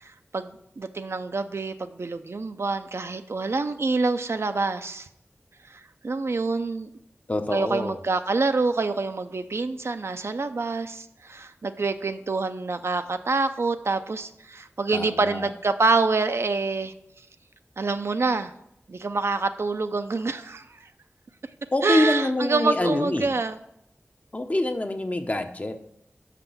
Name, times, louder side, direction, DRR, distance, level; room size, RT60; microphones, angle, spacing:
voice 1, 0.0-5.1 6.0-6.9 7.5-16.9 17.8-18.5 18.9-20.7 21.8-23.6, right 3 dB, 65° right, 8 dB, 0.5 m, -26 dB
voice 2, 7.3-8.0 14.9-15.5 21.7-23.3 24.3-25.8, left 1 dB, 30° left, 7 dB, 0.7 m, -25 dB
5.9 x 5.8 x 6.9 m, 0.77 s
wide cardioid pair, 50°, 5 cm